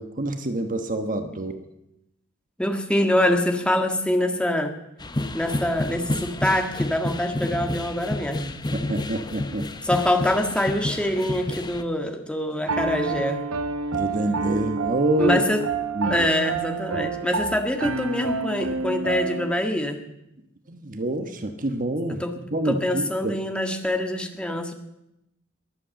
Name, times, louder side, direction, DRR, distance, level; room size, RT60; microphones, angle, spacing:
voice 1, 0.0-1.6 8.7-9.7 13.9-15.4 15.9-16.3 20.7-22.2 22.5-23.3, right 1 dB, 40° right, 7 dB, 1.2 m, -26 dB
voice 2, 2.6-4.7 5.3-8.6 9.8-13.4 15.2-15.6 16.1-20.0 22.2-24.7, left 1 dB, 5° left, 4 dB, 1.7 m, -24 dB
sound 1, 5.0-11.8, left 1 dB, 20° left, 0.9 m, -30 dB
Piano, 12.7-19.5, right 4 dB, 90° right, 0.8 m, -29 dB
22.0 x 8.6 x 7.7 m, 0.85 s
head